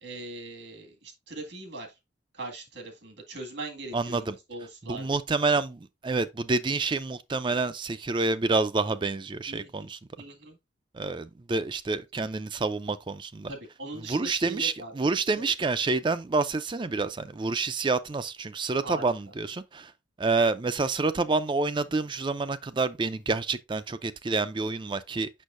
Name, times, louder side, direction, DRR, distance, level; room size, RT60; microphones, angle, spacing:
voice 1, 0.0-2.0 2.3-5.1 9.5-9.7 10.2-10.6 13.5-14.9 18.8-19.3, right 2 dB, 75° right, 1.9 m, -40 dB
voice 2, 3.9-4.4 4.8-10.0 10.9-13.5 14.1-19.9 20.2-25.3, right 3 dB, 25° right, 0.4 m, -28 dB
6.4 x 6.1 x 2.5 m
head